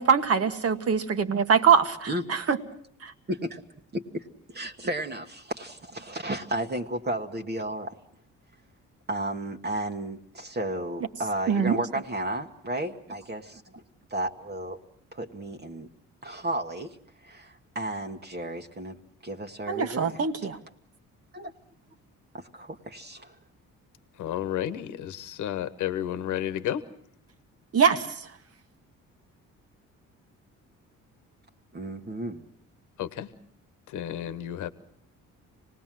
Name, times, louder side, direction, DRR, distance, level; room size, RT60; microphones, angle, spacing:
voice 1, 0.0-2.6 3.0-3.1 11.5-11.8 19.7-20.6 27.7-28.1, right 6 dB, 50° right, 10 dB, 1.6 m, -23 dB
voice 2, 3.3-3.6 3.9-8.0 9.1-13.8 14.1-14.8 15.1-15.9 16.2-17.0 17.2-19.0 19.2-20.5 21.3-21.5 22.3-23.4 31.7-32.5, right 1 dB, 35° right, 3 dB, 1.4 m, -33 dB
voice 3, 24.2-26.8 33.0-33.3 33.9-34.7, left 11 dB, 80° left, 13 dB, 1.1 m, -31 dB
25.5 x 19.0 x 7.5 m, 0.63 s
cardioid pair, 90°, 30 cm